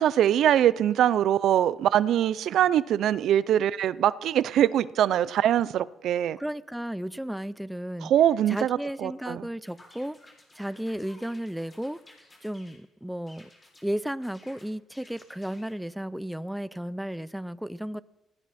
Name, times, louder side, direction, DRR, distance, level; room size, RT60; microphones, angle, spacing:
voice 1, 0.0-6.4 8.0-9.4, right 11 dB, 75° right, 0.5 m, -23 dB
voice 2, 6.4-8.1 8.5-10.2 10.5-12.0 12.4-13.5 13.8-18.0, equal, 5° right, 0.5 m, -34 dB
sound 1, 9.7-12.8 13.3-13.9 14.2-15.8, left 2 dB, 25° left, 6.3 m, -55 dB
18.5 x 17.0 x 4.3 m
cardioid pair, 90°, 0 cm